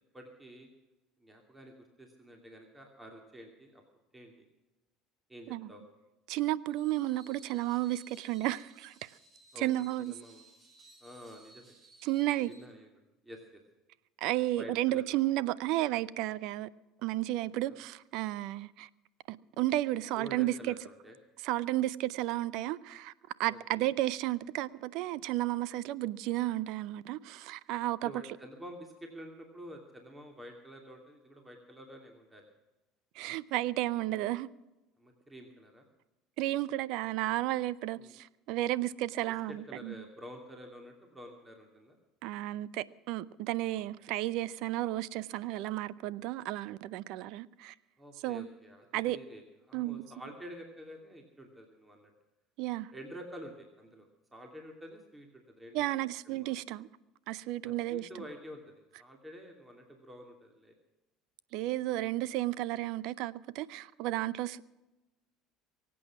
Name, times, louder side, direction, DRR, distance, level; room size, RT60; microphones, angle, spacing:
voice 1, 0.1-0.7 1.2-3.8 4.1-4.3 5.3-5.8 9.5-9.6 10.0-10.4 11.0-11.7 12.5-12.9 13.2-13.6 14.6-15.1 17.6-17.8 20.2-21.2 23.5-23.9 28.0-32.4 35.0-35.9 38.0-38.1 39.3-42.0 43.7-43.8 48.0-52.1 52.9-55.9 56.2-56.5 57.6-60.8, equal, 15° right, 2.7 m, -49 dB
voice 2, 6.3-9.1 9.6-10.2 12.0-12.5 14.2-16.7 17.0-18.9 19.3-20.7 21.4-23.1 23.4-28.1 33.2-34.5 36.4-39.9 42.2-47.7 48.2-48.5 48.9-49.2 49.7-50.1 52.6-52.9 55.7-56.9 57.3-58.1 61.5-64.6, right 15 dB, 65° right, 0.6 m, -33 dB
Screech, 6.7-12.7, right 2 dB, 35° right, 3.3 m, -59 dB
23.5 x 8.6 x 6.0 m
hypercardioid pair, 80°, 0 cm